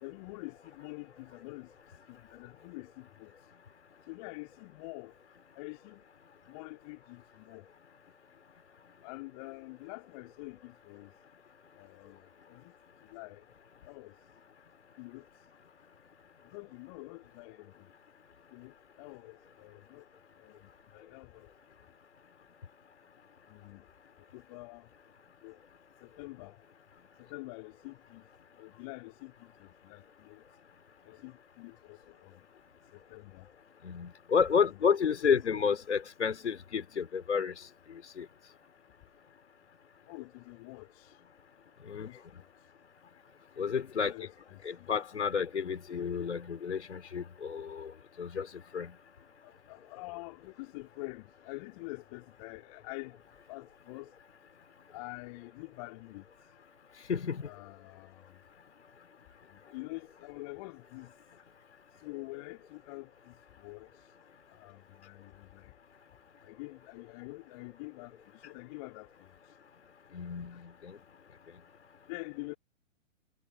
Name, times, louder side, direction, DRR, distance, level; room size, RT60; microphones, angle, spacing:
voice 1, 0.0-1.7 2.1-3.3 4.1-5.1 5.5-6.0 6.5-7.6 9.0-11.1 11.8-12.7 13.1-13.4 13.8-14.1 15.0-15.2 16.5-17.9 18.5-20.0 20.4-20.6 20.9-21.5 23.5-23.8 24.3-24.9 25.4-25.6 26.0-26.6 27.2-28.2 28.6-30.4 31.0-32.4 32.9-33.5 34.6-34.9 35.2-35.4 40.1-41.1 41.9-42.2 44.0-44.9 49.4-53.2 53.5-54.1 54.9-56.2 57.4-58.4 59.5-61.1 62.0-63.9 64.5-65.7 66.4-68.2 68.4-69.3 72.1-72.5, left 25 dB, 25° left, 2.8 m, -46 dB
voice 2, 33.8-37.6 37.9-38.3 41.8-42.1 43.6-44.1 44.6-47.9 48.2-48.9 57.1-57.5 70.1-71.0, left 6 dB, 55° left, 4.6 m, -31 dB
figure-of-eight pair, 125°, 40 cm